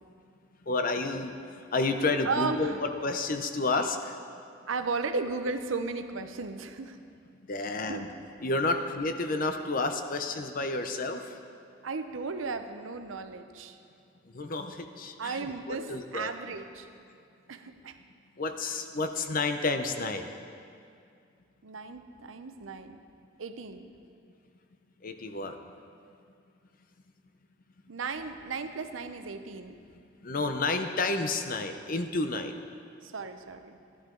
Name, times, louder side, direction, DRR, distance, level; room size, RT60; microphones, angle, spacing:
voice 1, 0.7-1.4 1.7-4.2 7.5-8.1 8.4-11.3 14.3-16.3 18.4-20.3 25.0-25.6 30.2-32.6, left 3 dB, 45° left, 7 dB, 0.7 m, -30 dB
voice 2, 2.2-2.8 4.7-7.0 7.6-8.1 11.8-13.8 15.2-16.9 17.5-18.0 21.6-23.0 23.4-23.9 27.9-29.8 33.0-33.8, right 4 dB, 80° right, 8 dB, 0.7 m, -35 dB
14.5 x 11.5 x 3.8 m, 2.4 s
head